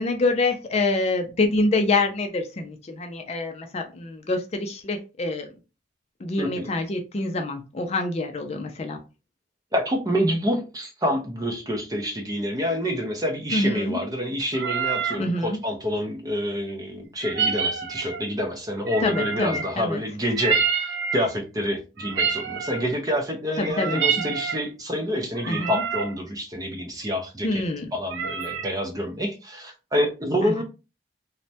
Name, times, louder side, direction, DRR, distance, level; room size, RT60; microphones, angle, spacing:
voice 1, 0.0-5.5 6.2-9.0 13.5-14.0 15.2-15.6 19.0-20.0 23.6-24.2 25.5-25.8 27.4-27.9 30.4-30.6, left 2 dB, 35° left, 0.4 m, -26 dB
voice 2, 6.4-6.7 9.7-27.6 27.9-30.6, equal, 20° right, 0.5 m, -27 dB
sound 1, 14.5-15.2 17.2-18.3 18.9-19.8 20.4-21.3 22.0-22.9 23.6-24.6 25.4-26.1 28.1-28.7, right 6 dB, 75° right, 0.5 m, -27 dB
3.1 x 2.1 x 2.7 m
head